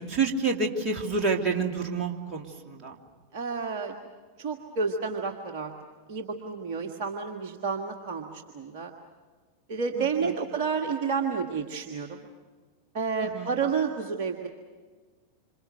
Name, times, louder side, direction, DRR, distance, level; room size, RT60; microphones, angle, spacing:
voice 1, 0.1-3.0 9.9-10.3 13.2-13.5, right 4 dB, 30° right, 1 dB, 2.9 m, -29 dB
voice 2, 3.3-4.0 4.4-5.7 6.1-8.9 9.7-12.1 12.9-14.5, right 5 dB, 45° right, 3 dB, 1.7 m, -30 dB
27.0 x 27.0 x 6.7 m, 1.5 s
figure-of-eight pair, 90°, 0 cm